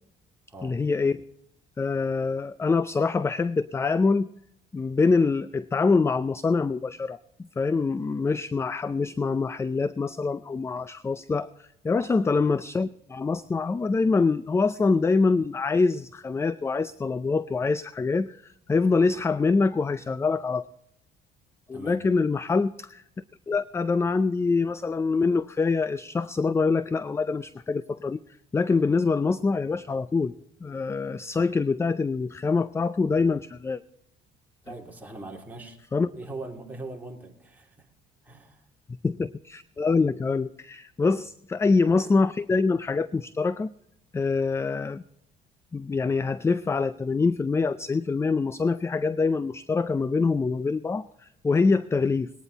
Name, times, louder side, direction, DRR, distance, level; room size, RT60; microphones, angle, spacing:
voice 1, 0.6-1.2 1.8-4.3 4.7-20.7 21.7-23.0 23.5-28.2 28.5-30.3 30.6-33.8 35.9-36.1 39.0-43.7 44.1-45.0 45.7-52.3, left 4 dB, 15° left, 15 dB, 0.4 m, -25 dB
voice 2, 34.6-35.8 36.1-37.9 38.2-38.6 41.1-41.2, right 2 dB, 10° right, -1 dB, 3.1 m, -41 dB
20.0 x 9.9 x 4.1 m, 0.77 s
cardioid pair, 110°, 17 cm